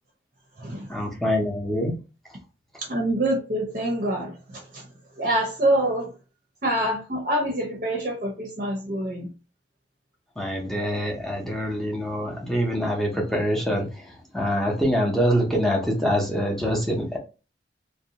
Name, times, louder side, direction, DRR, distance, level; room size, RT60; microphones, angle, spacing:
voice 1, 0.9-2.0 10.4-17.2, equal, ahead, -1 dB, 0.6 m, -25 dB
voice 2, 2.8-4.8 5.2-6.1 6.6-9.3, right 1 dB, 45° right, 0 dB, 0.6 m, -26 dB
2.5 x 2.1 x 2.8 m, 0.31 s
head